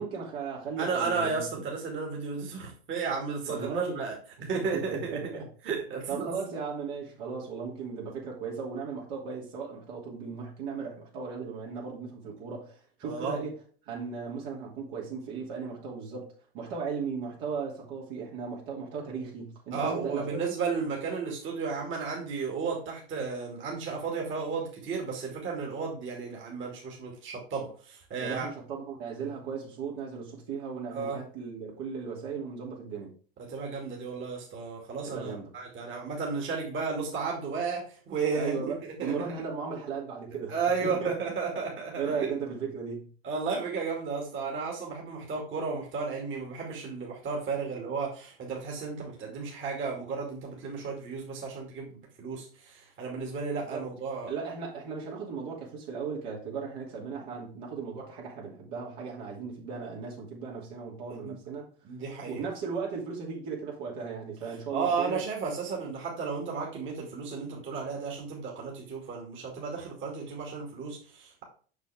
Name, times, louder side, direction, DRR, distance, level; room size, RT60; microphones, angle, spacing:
voice 1, 0.0-1.5 3.4-4.0 4.7-5.5 6.1-13.6 13.8-20.4 28.2-33.1 35.1-35.5 38.3-41.1 42.0-43.1 53.7-53.8 54.3-61.7 62.3-65.2, right 5 dB, 65° right, 2.8 m, -36 dB
voice 2, 0.8-4.2 4.4-5.3 5.6-6.3 13.0-13.4 19.7-28.5 30.9-31.2 33.4-39.3 40.5-42.3 43.2-54.3 61.2-61.4 61.8-62.4 64.7-71.4, right 5 dB, 40° right, 2.4 m, -33 dB
6.7 x 6.1 x 3.5 m
hypercardioid pair, 85°, 29 cm